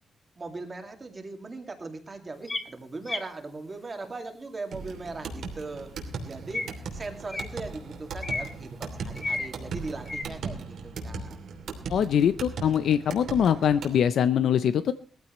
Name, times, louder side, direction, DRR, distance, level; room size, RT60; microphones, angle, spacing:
voice 1, 0.4-6.7 6.9-11.4, right 3 dB, 20° right, 5 dB, 2.3 m, -39 dB
sound 1, 2.5-2.7 3.1-3.2 6.5-6.7 7.3-7.5 8.2-8.5 9.2-9.5 10.1-10.2, left 2 dB, 20° left, 1.3 m, -31 dB
sound 2, 4.7-14.0, right 4 dB, 60° right, 2.8 m, -38 dB
voice 2, 11.9-14.9, left 8 dB, 65° left, 12 dB, 0.6 m, -23 dB
20.0 x 14.5 x 3.1 m, 0.37 s
wide cardioid pair, 175°, 0 cm